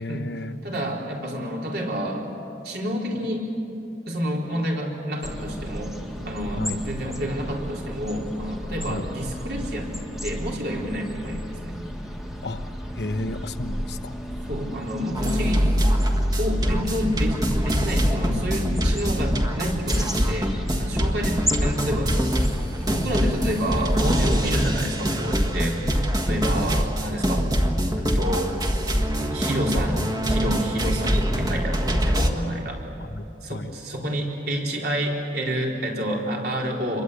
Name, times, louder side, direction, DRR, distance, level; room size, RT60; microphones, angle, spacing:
voice 1, 0.0-0.6 6.5-6.8 8.8-9.1 12.4-12.6 13.0-14.1 21.2-21.4 26.5-26.7 33.0-33.7, left 2 dB, 65° left, 9 dB, 1.1 m, -32 dB
voice 2, 0.6-2.3 2.6-3.5 4.1-6.0 6.2-11.8 14.5-15.8 16.4-20.5 20.8-22.2 22.8-26.0 26.3-27.5 28.0-28.5 29.2-32.8 33.4-37.0, equal, 60° right, -1 dB, 4.2 m, -29 dB
sound 1, 5.2-24.7, equal, ahead, 1.6 m, -34 dB
sound 2, 15.2-32.3, equal, 20° right, 1.6 m, -24 dB
28.0 x 22.5 x 8.2 m, 2.7 s
head